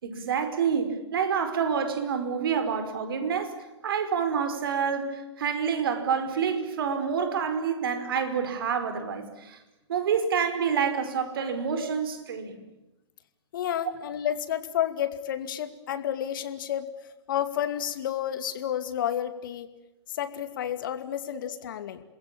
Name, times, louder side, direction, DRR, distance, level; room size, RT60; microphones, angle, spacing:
voice 1, 0.0-3.5 3.8-9.6 9.9-12.6, right 6 dB, 50° right, 8 dB, 5.0 m, -28 dB
voice 2, 13.5-16.9 17.3-19.7 20.1-22.0, left 10 dB, 45° left, 10 dB, 2.4 m, -30 dB
28.5 x 21.5 x 8.7 m, 0.97 s
figure-of-eight pair, 125°, 15 cm